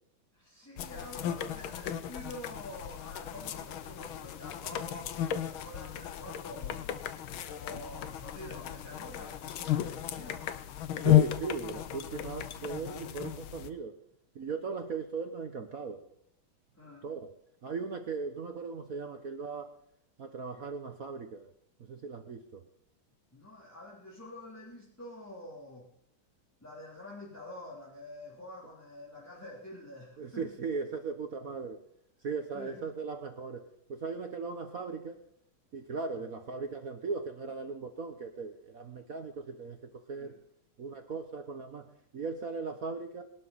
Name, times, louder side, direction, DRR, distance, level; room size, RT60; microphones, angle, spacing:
voice 1, 0.3-6.9 7.6-10.6 16.7-17.1 23.3-25.9 26.6-30.5 32.5-32.8 36.1-36.2 40.2-40.4, left 1 dB, 5° left, -5 dB, 3.1 m, -47 dB
sound 1, 0.8-13.7, left 12 dB, 75° left, 1.7 m, -33 dB
voice 2, 11.0-14.0 14.3-16.0 17.0-17.3 17.6-19.7 20.2-21.5 21.8-22.7 30.2-31.8 32.2-35.2 35.7-40.3 40.8-43.2, right 4 dB, 50° right, 6 dB, 1.3 m, -38 dB
22.0 x 12.0 x 4.2 m, 0.71 s
omnidirectional pair, 2.3 m